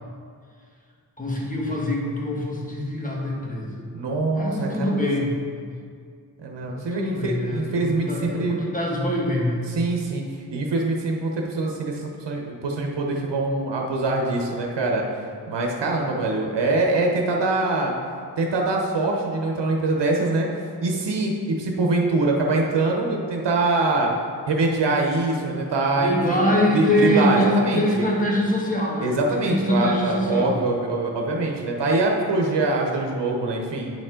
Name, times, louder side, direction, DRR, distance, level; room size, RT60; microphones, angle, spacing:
voice 1, 1.2-3.9 4.3-5.7 6.6-9.6 25.9-30.6, left 1 dB, 20° left, -3 dB, 1.4 m, -24 dB
voice 2, 3.9-5.1 6.4-8.6 9.7-10.2 10.5-15.0 15.5-17.9 18.4-20.5 20.8-24.1 24.5-28.0 29.0-33.9, right 2 dB, 90° right, 0 dB, 1.0 m, -24 dB
9.0 x 5.3 x 3.7 m, 2.2 s
wide cardioid pair, 110°, 41 cm